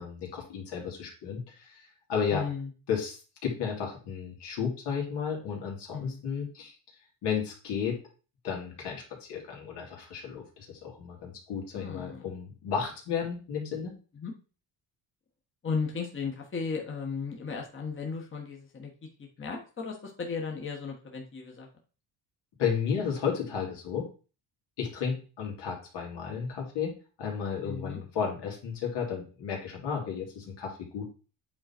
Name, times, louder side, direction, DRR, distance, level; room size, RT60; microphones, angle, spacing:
voice 1, 0.0-2.4 2.9-6.8 7.2-8.0 8.4-13.9 22.6-24.1 24.8-26.9 27.2-31.1, left 6 dB, 75° left, 0 dB, 2.7 m, -33 dB
voice 2, 2.3-2.7 5.9-6.3 11.7-12.3 14.1-14.3 15.6-18.9 19.2-21.7 27.6-28.0, left 5 dB, 30° left, 0 dB, 1.5 m, -35 dB
8.7 x 3.9 x 4.4 m, 0.36 s
cardioid pair, 125°, 42 cm